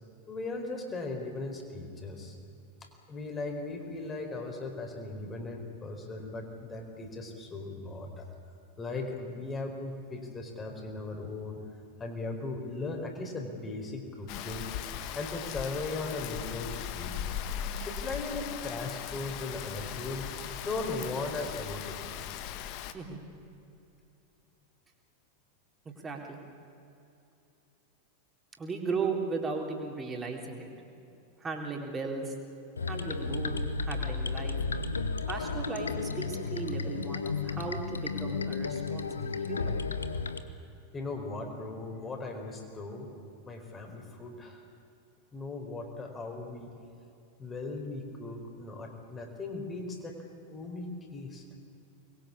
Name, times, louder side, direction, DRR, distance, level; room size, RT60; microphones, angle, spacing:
voice 1, 0.3-2.4 2.8-8.3 8.8-11.6 12.0-14.6 15.1-17.2 17.9-20.3 20.6-22.0 40.9-43.1 43.4-44.6 45.3-46.7 47.4-50.2 50.4-51.4, left 3 dB, 20° left, 3 dB, 4.5 m, -38 dB
Rain, 14.3-22.9, left 9 dB, 45° left, 1.4 m, -38 dB
voice 2, 25.9-26.4 28.6-30.7 31.4-32.3 32.9-34.6 35.3-39.8, right 4 dB, 15° right, 1 dB, 4.0 m, -36 dB
sound 1, 32.8-40.4, left 4 dB, 75° left, 1.2 m, -33 dB
25.0 x 21.5 x 8.6 m, 2.7 s
figure-of-eight pair, 90°, 0 cm